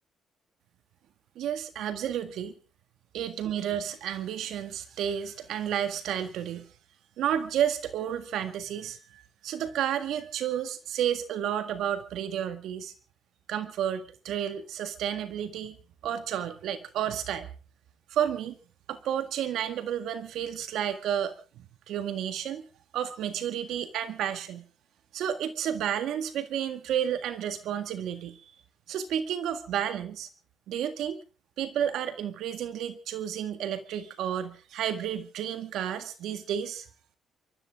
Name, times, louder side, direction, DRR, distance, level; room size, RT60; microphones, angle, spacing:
voice 1, 1.4-2.5 3.1-6.7 7.2-12.9 13.5-15.8 16.0-17.5 18.1-18.6 18.9-21.3 21.9-22.6 22.9-24.7 25.1-28.4 28.9-30.3 30.7-31.2 31.6-36.9, right 9 dB, 80° right, 10 dB, 1.8 m, -31 dB
28.0 x 13.5 x 3.6 m, 0.35 s
cardioid pair, 90°, 0 cm